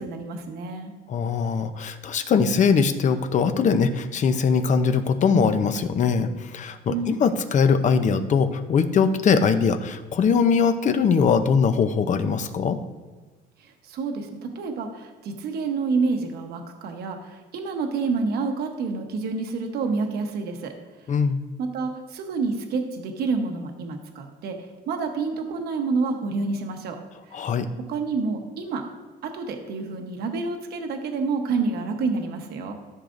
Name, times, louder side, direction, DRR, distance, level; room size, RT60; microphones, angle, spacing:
voice 1, 0.0-0.9 6.9-7.1 13.6-20.7 21.6-24.6 24.9-27.0 27.3-27.4 27.9-28.8 29.2-32.7, right 4 dB, 70° right, 4 dB, 1.1 m, -28 dB
voice 2, 1.1-12.8 21.1-21.4 27.3-27.7, left 5 dB, 45° left, 10 dB, 0.7 m, -21 dB
13.5 x 6.5 x 2.6 m, 1.3 s
cardioid pair, 110°, 17 cm